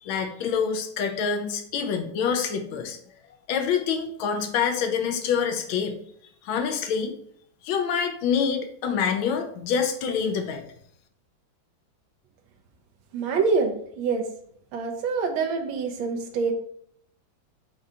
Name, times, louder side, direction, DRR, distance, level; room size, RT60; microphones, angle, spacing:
voice 1, 0.0-3.0 3.5-6.0 6.4-7.1 7.6-10.6, left 6 dB, 90° left, 5 dB, 1.4 m, -26 dB
voice 2, 13.1-14.3 14.7-16.5, right 5 dB, 85° right, 5 dB, 1.5 m, -26 dB
5.0 x 2.7 x 3.3 m, 0.66 s
omnidirectional pair, 2.1 m